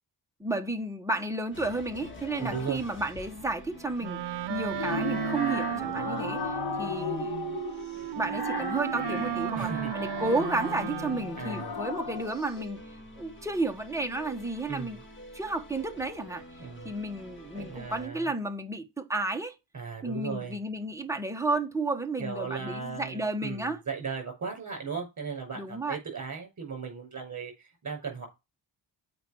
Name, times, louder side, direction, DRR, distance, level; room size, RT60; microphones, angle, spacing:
voice 1, 0.4-4.2 4.5-7.4 8.1-12.8 13.2-15.0 15.3-16.4 16.8-19.5 20.0-23.8 25.6-26.0, right 2 dB, 5° right, 1.2 m, -32 dB
sound 1, 1.5-18.1, equal, 30° left, 2.4 m, -49 dB
sound 2, 1.9-2.9 4.4-12.5, left 7 dB, 70° left, 1.3 m, -37 dB
voice 2, 2.4-2.8 9.5-9.9 11.4-11.7 14.7-15.0 16.6-16.9 17.5-18.3 19.7-20.6 22.2-28.3, right 5 dB, 45° right, 5.7 m, -37 dB
Wind instrument woodwind instrument, 4.0-11.4, right 13 dB, 75° right, 0.7 m, -34 dB
8.0 x 5.2 x 6.2 m
wide cardioid pair, 140°, 41 cm